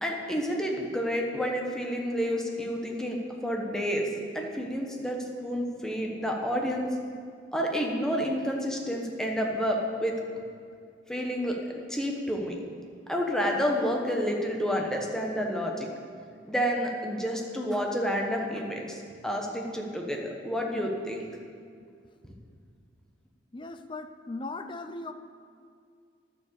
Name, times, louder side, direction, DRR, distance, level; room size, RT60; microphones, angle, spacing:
voice 1, 0.0-4.1 4.3-7.0 7.5-10.2 11.1-12.6 13.1-15.9 16.5-21.3, equal, 5° left, 0 dB, 1.2 m, -29 dB
voice 2, 23.5-25.1, left 2 dB, 25° left, 8 dB, 0.5 m, -38 dB
11.5 x 7.1 x 6.9 m, 2.2 s
head